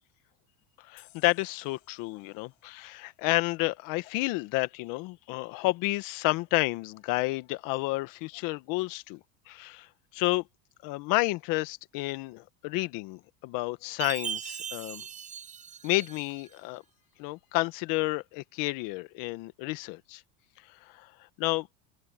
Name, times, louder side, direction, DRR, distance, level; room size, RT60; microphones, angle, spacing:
voice 1, 0.8-9.2 9.5-10.4 10.8-15.0 15.8-16.8 17.2-20.2 20.7-21.1 21.4-21.7, left 22 dB, 55° left, 1.5 m, -30 dB
sound 1, 1.0-4.3, left 24 dB, 70° left, 6.9 m, -63 dB
Chime, 14.0-16.5, right 8 dB, 20° right, 0.8 m, -39 dB
open air
supercardioid pair, 145°, 40 cm